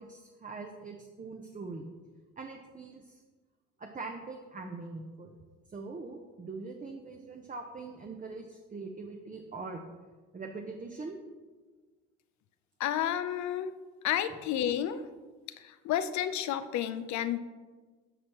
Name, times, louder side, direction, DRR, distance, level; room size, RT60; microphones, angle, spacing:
voice 1, 0.0-1.9 2.4-3.1 3.8-5.3 5.7-9.8 10.3-11.2, right 3 dB, 25° right, 3 dB, 0.8 m, -42 dB
voice 2, 12.8-13.7 14.0-15.0 15.6-17.4, left 10 dB, 70° left, 11 dB, 0.6 m, -31 dB
10.0 x 6.2 x 3.0 m, 1.4 s
supercardioid pair, 75°, 30 cm